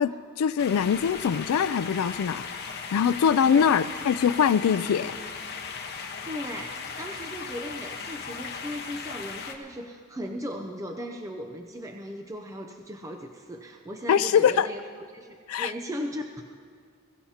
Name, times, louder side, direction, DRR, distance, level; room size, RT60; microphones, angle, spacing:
voice 1, 0.0-2.5 2.9-5.2 14.1-14.7 15.5-15.7, left 7 dB, 75° left, 14 dB, 0.3 m, -23 dB
sound 1, 0.6-9.5, left 5 dB, 50° left, 1.1 m, -37 dB
voice 2, 6.3-14.8 15.1-16.4, equal, 15° right, 4 dB, 0.5 m, -37 dB
22.0 x 15.5 x 2.9 m, 2.1 s
head